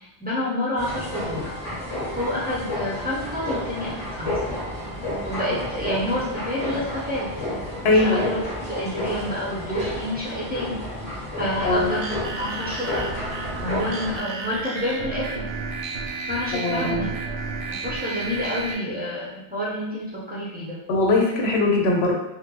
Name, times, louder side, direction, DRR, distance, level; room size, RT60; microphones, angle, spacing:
voice 1, 0.0-1.5 2.1-4.4 5.2-7.3 7.8-8.4 8.7-10.8 11.4-13.1 13.6-15.5 16.3-17.3 17.7-20.8, left 1 dB, 10° right, -8 dB, 0.6 m, -29 dB
sound 1, 0.8-14.2, left 1 dB, 30° left, 1.5 m, -31 dB
voice 2, 7.8-8.3 11.6-11.9 16.5-17.1 20.9-22.1, left 2 dB, 70° left, 1 dB, 0.9 m, -20 dB
sound 2, 11.6-18.7, right 3 dB, 85° right, 0.9 m, -32 dB
3.7 x 2.1 x 2.9 m, 0.94 s
omnidirectional pair, 1.1 m